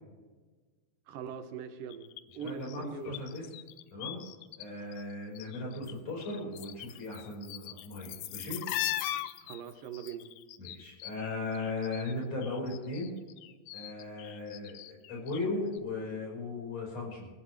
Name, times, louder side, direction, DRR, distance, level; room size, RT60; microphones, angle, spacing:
voice 1, 1.1-2.1 2.3-3.2 9.4-10.3, right 7 dB, 85° right, 8 dB, 2.9 m, -41 dB
sound 1, 1.9-4.6 4.9-5.9 6.2-12.1 12.4-15.4 15.7-15.8, left 13 dB, 75° left, 1.8 m, -40 dB
voice 2, 2.4-3.5 3.9-4.2 4.6-8.6 10.6-13.1 13.7-17.3, left 2 dB, 50° left, -2 dB, 5.9 m, -37 dB
28.5 x 13.5 x 3.2 m, 1.4 s
omnidirectional pair, 3.8 m